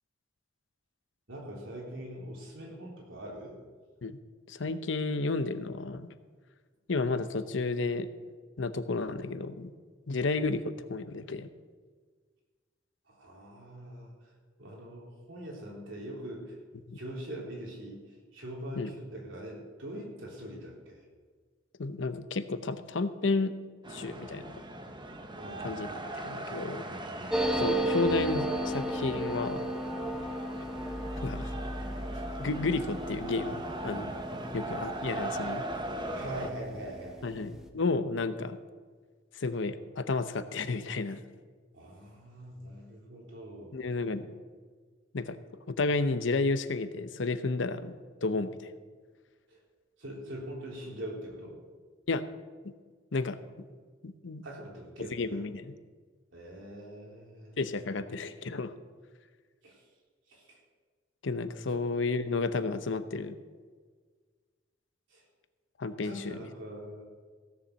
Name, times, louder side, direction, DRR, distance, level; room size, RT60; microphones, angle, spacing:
voice 1, 1.3-3.6 13.1-14.3 14.6-16.6 16.9-21.0 25.4-26.1 26.8-27.5 36.1-37.5 41.7-43.8 49.5-49.6 50.0-51.6 54.4-55.2 56.3-57.6 59.6-59.8 60.3-60.6 61.7-61.8 65.1-65.2 66.0-67.1, right 1 dB, 75° right, -2 dB, 3.7 m, -43 dB
voice 2, 4.5-6.1 6.9-8.1 8.6-9.7 10.1-11.5 16.9-17.0 18.8-18.9 21.8-23.6 23.9-24.5 25.6-25.9 26.1-26.8 27.6-29.7 31.2-31.5 32.4-34.1 34.5-35.6 37.2-38.6 39.3-41.2 43.7-44.3 45.1-45.4 45.7-47.9 48.2-48.7 52.1-52.2 52.6-52.7 53.1-53.4 54.0-54.4 55.1-55.7 57.6-58.7 61.2-63.4 65.8-66.4, left 3 dB, 70° left, 11 dB, 0.8 m, -32 dB
sound 1, 23.8-36.5, right 1 dB, 25° right, 1.1 m, -39 dB
sound 2, 27.3-36.5 36.8-36.9 37.1-37.6, right 1 dB, 5° right, 1.0 m, -34 dB
16.0 x 7.1 x 6.4 m, 1.5 s
head